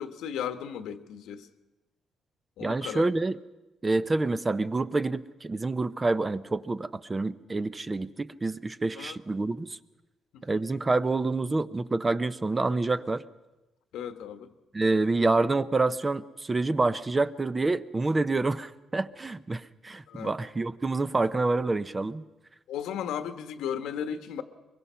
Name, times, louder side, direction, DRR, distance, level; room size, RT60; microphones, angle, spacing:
voice 1, 0.0-1.5 2.6-3.0 9.0-9.2 10.3-10.6 13.9-14.5 20.1-20.3 22.7-24.4, left 8 dB, 85° left, 9 dB, 1.3 m, -35 dB
voice 2, 2.6-3.4 3.8-9.8 10.4-13.2 14.7-22.2, right 3 dB, 20° right, 14 dB, 0.6 m, -27 dB
23.5 x 22.5 x 5.7 m, 1.1 s
cardioid pair, 120°, 0 cm